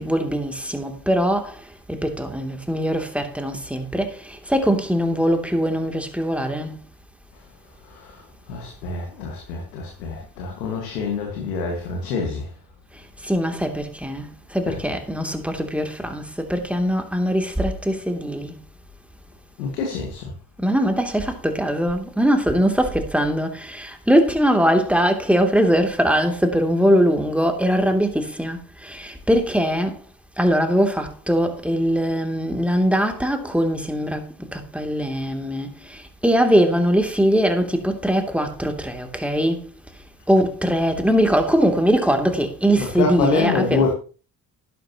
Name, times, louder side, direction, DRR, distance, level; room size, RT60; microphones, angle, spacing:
voice 1, 0.0-1.6 1.9-6.8 13.2-18.6 20.6-30.0 30.4-39.6 40.3-43.9, equal, 5° right, 2.8 m, -21 dB
voice 2, 7.8-12.5 14.6-15.0 19.6-20.3 42.8-43.9, left 5 dB, 90° left, 1.9 m, -26 dB
12.0 x 11.5 x 3.0 m
hypercardioid pair, 50°, 47 cm